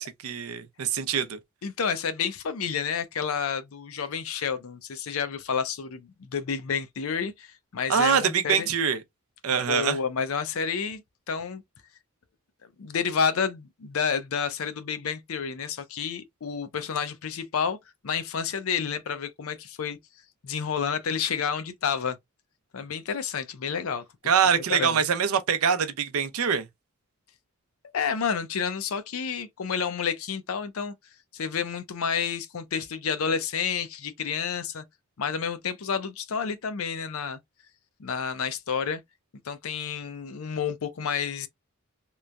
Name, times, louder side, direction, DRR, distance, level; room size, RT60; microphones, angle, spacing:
voice 1, 0.0-1.4 7.9-9.0 9.4-10.0 24.3-26.7, right 7 dB, 80° right, 0.5 m, -24 dB
voice 2, 1.6-8.7 9.7-11.0 11.3-11.6 12.8-17.8 18.0-20.0 20.4-22.2 22.7-24.0 24.7-25.0 27.9-30.9 31.3-34.8 35.2-37.4 38.0-39.0 39.5-41.5, left 6 dB, 75° left, 0.5 m, -30 dB
3.0 x 2.1 x 2.4 m
head